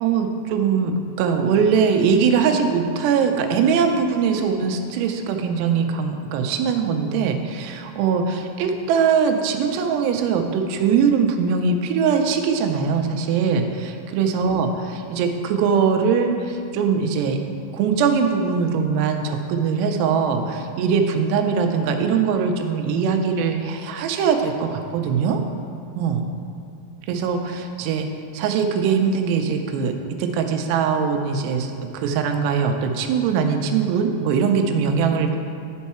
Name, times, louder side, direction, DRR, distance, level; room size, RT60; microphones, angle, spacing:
voice 1, 0.0-17.4 17.7-25.4 26.0-26.2 27.1-28.1 28.3-29.9 30.2-35.4, right 6 dB, 90° right, 5 dB, 2.7 m, -21 dB
10.5 x 4.6 x 4.2 m, 2.7 s
omnidirectional pair, 4.8 m